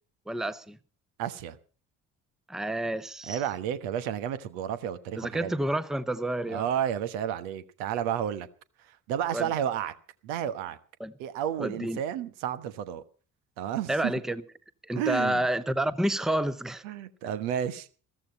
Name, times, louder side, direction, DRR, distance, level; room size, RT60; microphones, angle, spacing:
voice 1, 0.3-0.8 2.5-3.4 5.2-6.6 9.3-9.5 11.0-11.1 11.6-12.0 13.9-14.4 14.8-16.8, right 1 dB, ahead, 0.9 m, -29 dB
voice 2, 1.2-1.6 3.3-5.5 6.5-8.5 8.9-9.9 10.2-10.8 11.2-13.0 13.6-14.1 14.9-15.5 16.8-17.9, right 10 dB, 70° right, 1.3 m, -31 dB
14.5 x 14.0 x 5.5 m
hypercardioid pair, 50°, 40 cm